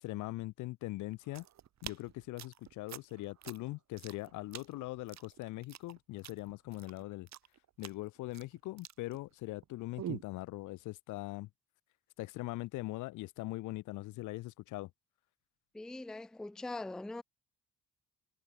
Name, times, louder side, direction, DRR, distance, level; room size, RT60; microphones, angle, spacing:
voice 1, 0.0-1.4 1.8-7.3 7.8-11.5 12.2-14.9, left 19 dB, 80° left, 0.5 m, -41 dB
sound 1, 1.1-9.7 10.0-10.4, right 11 dB, 65° right, 2.0 m, -47 dB
voice 2, 15.7-17.2, left 2 dB, ahead, 0.4 m, -42 dB
cardioid pair, 90°, 30 cm